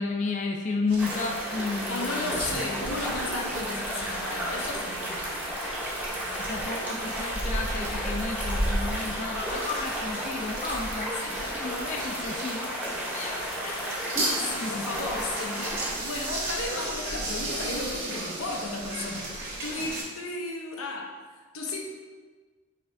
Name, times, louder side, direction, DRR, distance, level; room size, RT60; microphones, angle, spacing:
voice 1, 0.0-2.5 6.1-13.9 14.6-14.9, left 3 dB, 35° left, 1 dB, 0.3 m, -33 dB
sound 1, 0.9-20.0, right 1 dB, 60° right, 1.4 m, -35 dB
sound 2, 1.0-15.9, equal, 10° right, 0.8 m, -33 dB
voice 2, 1.9-5.3 11.2-11.4 14.1-21.2 21.5-21.8, left 2 dB, 85° left, 0 dB, 0.7 m, -34 dB
5.6 x 3.3 x 2.6 m, 1.4 s
head